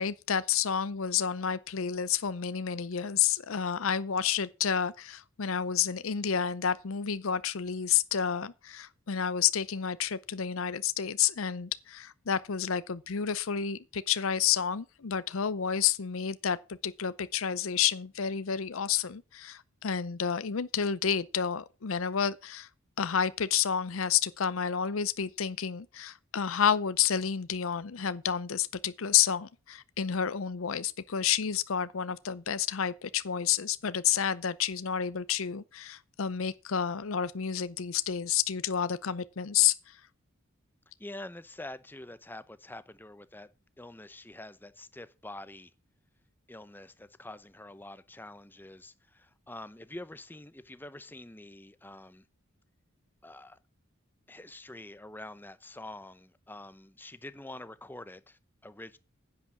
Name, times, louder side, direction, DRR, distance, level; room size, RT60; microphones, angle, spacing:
voice 1, 0.0-22.7 23.0-40.0, left 8 dB, 75° left, 0.6 m, -30 dB
voice 2, 41.0-43.5 43.8-45.7 46.5-52.2 53.2-53.6 54.3-59.0, left 1 dB, 10° left, 0.7 m, -46 dB
10.0 x 8.6 x 6.1 m
head